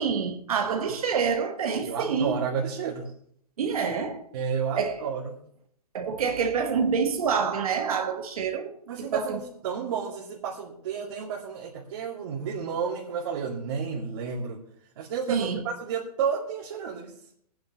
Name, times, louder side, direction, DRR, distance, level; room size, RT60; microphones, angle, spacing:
voice 1, 0.0-2.4 3.6-4.3 4.8-5.1 5.9-8.7 9.1-9.4 15.3-15.6, right 6 dB, 65° right, 1.5 m, -27 dB
voice 2, 1.8-3.1 4.3-5.4 8.9-14.6 15.0-17.1, right 6 dB, 45° right, 2.4 m, -31 dB
24.5 x 9.5 x 3.0 m
hypercardioid pair, 160°, 20 cm